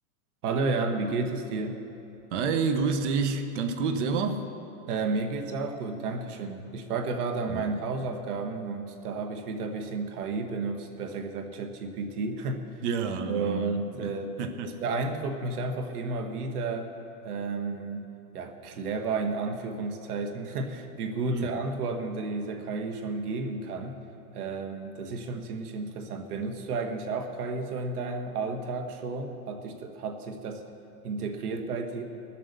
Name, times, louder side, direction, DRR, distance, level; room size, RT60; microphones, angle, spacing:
voice 1, 0.4-1.8 4.9-12.8 13.3-14.4 14.6-16.9 17.2-18.1 18.3-24.0 24.3-30.7 31.0-32.0, right 3 dB, 75° right, 5 dB, 1.7 m, -32 dB
voice 2, 2.3-4.4 7.5-7.6 12.8-14.1 14.4-14.7 21.3-21.5, right 5 dB, 50° right, 6 dB, 1.2 m, -29 dB
20.0 x 7.6 x 6.9 m, 2.9 s
supercardioid pair, 170°, 45 cm